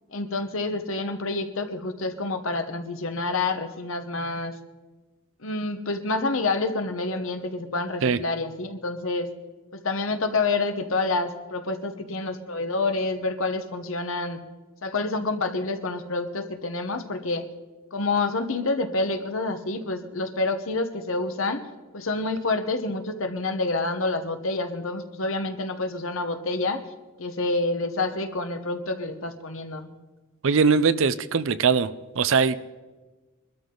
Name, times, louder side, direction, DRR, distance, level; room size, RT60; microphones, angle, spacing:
voice 1, 0.1-4.6 5.4-9.3 9.7-14.4 14.8-17.5 17.9-21.6 21.9-26.8 27.2-29.9, left 3 dB, 65° left, 8 dB, 1.2 m, -28 dB
voice 2, 30.4-31.9 32.2-32.6, right 5 dB, 60° right, 14 dB, 0.5 m, -21 dB
23.0 x 13.0 x 3.9 m, 1.3 s
head